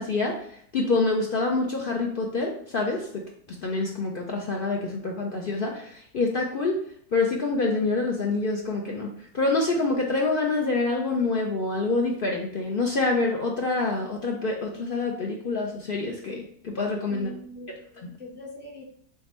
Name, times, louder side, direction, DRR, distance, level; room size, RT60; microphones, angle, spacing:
voice 1, 0.0-6.8 7.1-17.3 18.0-18.1, left 3 dB, 65° left, 0 dB, 0.5 m, -26 dB
voice 2, 17.1-18.8, left 1 dB, 10° right, -3 dB, 0.6 m, -42 dB
3.7 x 3.5 x 4.1 m, 0.65 s
omnidirectional pair, 1.6 m